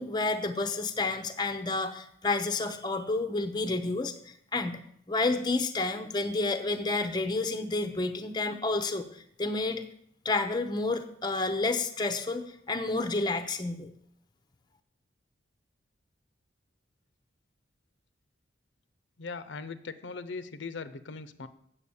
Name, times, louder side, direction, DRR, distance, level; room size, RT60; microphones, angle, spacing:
voice 1, 0.0-4.8 5.1-9.8 10.2-13.9, left 3 dB, 20° left, 8 dB, 0.6 m, -30 dB
voice 2, 19.2-21.5, left 4 dB, 70° left, 11 dB, 0.6 m, -39 dB
8.4 x 7.0 x 7.0 m, 0.69 s
head